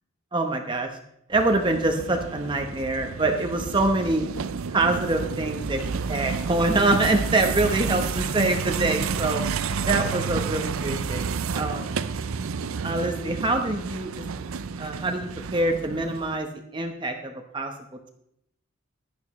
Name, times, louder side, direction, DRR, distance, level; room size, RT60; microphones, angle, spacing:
voice 1, 0.3-0.9 1.3-4.2 4.7-5.8 6.1-9.4 9.9-12.0 12.8-14.5 14.8-16.5 16.7-17.7, right 2 dB, 20° right, 4 dB, 0.9 m, -25 dB
sound 1, 1.3-16.4, right 5 dB, 75° right, 0.5 m, -30 dB
15.5 x 11.5 x 3.1 m, 0.76 s
head